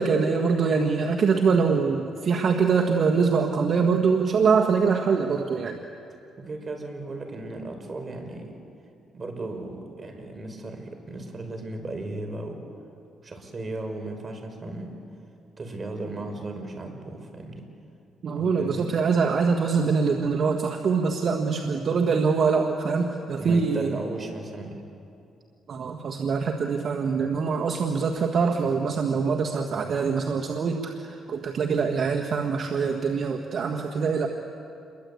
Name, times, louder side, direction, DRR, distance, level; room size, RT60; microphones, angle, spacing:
voice 1, 0.0-5.8 18.2-23.9 25.7-34.3, right 5 dB, 55° right, 3 dB, 1.7 m, -24 dB
voice 2, 6.4-8.5 9.1-12.6 13.2-15.0 15.6-17.6 18.3-19.0 23.4-24.8, right 2 dB, 35° right, 4 dB, 5.4 m, -36 dB
28.5 x 23.0 x 8.5 m, 2.6 s
cardioid pair, 90°, 0 cm